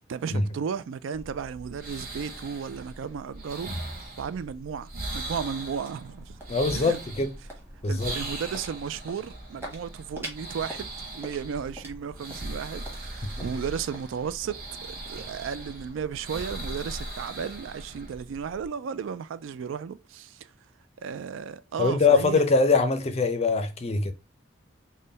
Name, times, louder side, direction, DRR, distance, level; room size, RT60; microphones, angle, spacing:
voice 1, 0.1-3.7 4.2-6.4 6.7-7.3 7.9-20.5 21.0-22.4, right 7 dB, 75° right, 0.3 m, -34 dB
sound 1, 1.1-18.7, right 2 dB, 45° right, 1.1 m, -39 dB
sound 2, 5.2-17.3, right 1 dB, 10° right, 1.0 m, -47 dB
voice 2, 6.5-7.3 7.8-8.2 13.2-13.5 21.8-24.1, left 4 dB, 30° left, 0.4 m, -23 dB
3.7 x 2.1 x 3.8 m
head